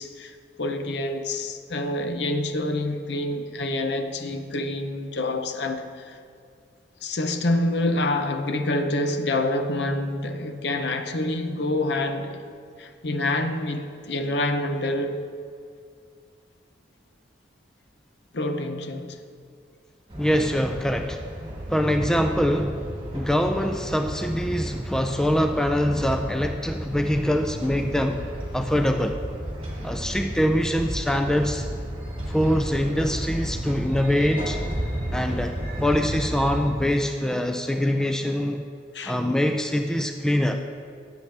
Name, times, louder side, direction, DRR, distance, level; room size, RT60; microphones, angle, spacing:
voice 1, 0.0-6.2 7.0-12.4 12.8-15.3 18.3-19.2 38.9-39.2, left 1 dB, 65° left, 7 dB, 0.7 m, -27 dB
sound 1, 20.1-36.7, equal, 30° right, 1.9 m, -33 dB
voice 2, 20.2-21.2 21.7-22.8 23.1-28.2 28.5-29.2 29.8-31.7 32.3-34.6 35.1-35.5 35.8-38.6 39.1-40.6, equal, 5° left, 5 dB, 0.3 m, -24 dB
13.0 x 8.4 x 3.3 m, 2.3 s
head